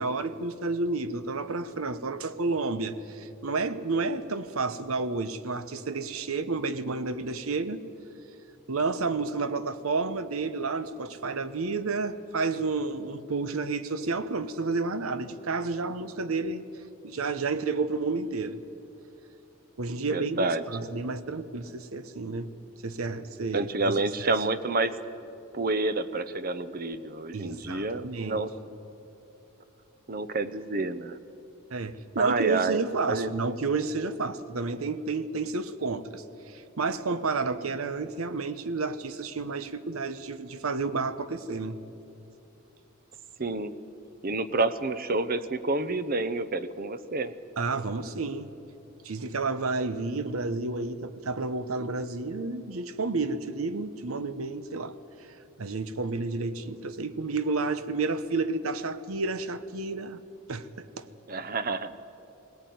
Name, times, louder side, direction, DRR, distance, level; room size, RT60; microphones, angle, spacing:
voice 1, 0.0-7.8 8.7-16.6 17.0-18.6 19.8-22.5 22.8-23.9 24.2-24.3 27.3-28.4 31.7-41.8 47.6-48.5 49.0-54.9 55.2-55.3 55.6-60.2 60.5-61.1, right 3 dB, 85° right, 13 dB, 1.0 m, -31 dB
voice 2, 20.1-20.6 23.5-25.0 25.5-28.8 30.1-31.2 32.2-32.8 33.1-33.3 43.4-43.7 44.2-47.3 61.3-61.9, right 3 dB, 45° right, 13 dB, 0.8 m, -29 dB
20.0 x 18.0 x 9.4 m, 2.8 s
head